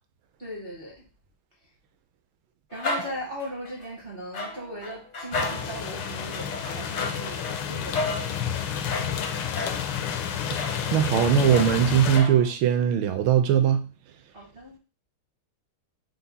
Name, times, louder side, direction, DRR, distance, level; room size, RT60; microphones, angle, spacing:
voice 1, 0.4-1.0 2.7-8.5 14.3-14.8, equal, 50° right, -2 dB, 0.7 m, -38 dB
sound 1, 2.7-3.9 4.3-12.5, left 2 dB, 55° left, 0.6 m, -34 dB
sound 2, 5.3-12.2, left 8 dB, 75° left, 1.3 m, -30 dB
voice 2, 10.9-13.8, right 9 dB, 75° right, 7 dB, 1.4 m, -20 dB
4.7 x 2.1 x 4.0 m, 0.33 s
omnidirectional pair, 2.3 m